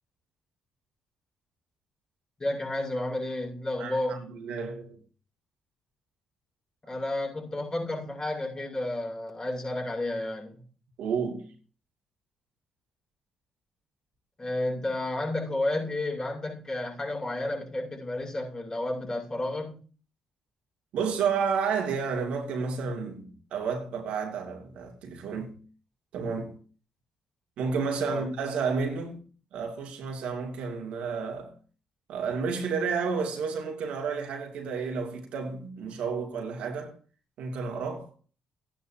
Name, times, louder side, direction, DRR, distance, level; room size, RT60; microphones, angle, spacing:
voice 1, 2.4-4.2 6.9-10.6 14.4-19.8 28.0-28.3, left 1 dB, 35° left, 6.0 m, -31 dB
voice 2, 3.8-5.0 6.8-6.9 11.0-11.5 20.9-25.6 26.1-26.5 27.6-29.2 29.5-31.5 32.1-36.9 37.4-38.1, right 5 dB, 70° right, 2.6 m, -31 dB
14.5 x 10.5 x 2.9 m
hypercardioid pair, 50°, 2 cm